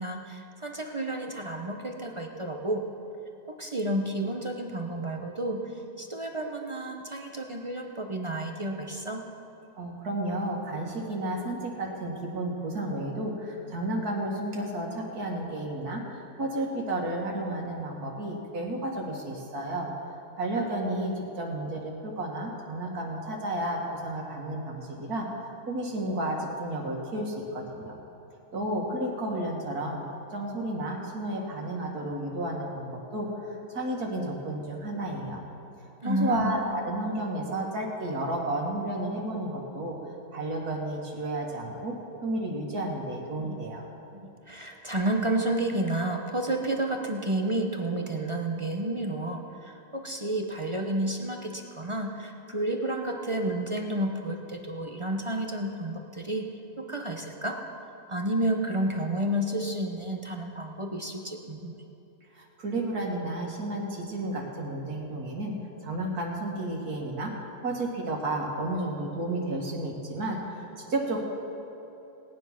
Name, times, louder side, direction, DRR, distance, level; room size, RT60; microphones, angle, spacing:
voice 1, 0.0-2.8 3.5-5.7 6.0-9.2 36.0-36.5 43.4-43.6 44.1-56.5 56.8-57.6 58.1-61.8, right 1 dB, 25° right, 2 dB, 0.7 m, -31 dB
voice 2, 9.8-28.0 28.5-30.0 30.3-35.4 36.0-39.9 40.3-42.0 42.2-43.8 62.3-65.6 65.8-67.3 67.6-71.3, right 1 dB, 75° right, -1 dB, 2.3 m, -32 dB
18.0 x 9.7 x 5.9 m, 2.9 s
omnidirectional pair, 1.6 m